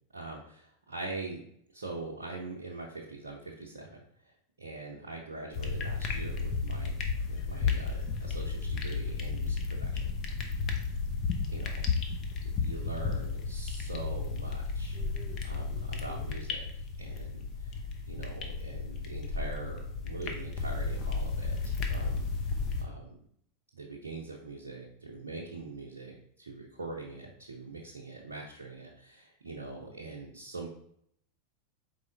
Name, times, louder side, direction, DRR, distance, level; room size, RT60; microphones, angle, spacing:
voice 1, 0.1-1.4 1.7-6.9 7.3-10.1 11.5-11.8 12.6-15.1 15.4-16.6 17.0-23.2 23.7-30.7, right 3 dB, 75° right, -3 dB, 0.6 m, -43 dB
sound 1, 5.5-22.8, left 4 dB, 40° left, 0.6 m, -33 dB
4.5 x 3.5 x 2.6 m, 0.68 s
figure-of-eight pair, 90°, 0 cm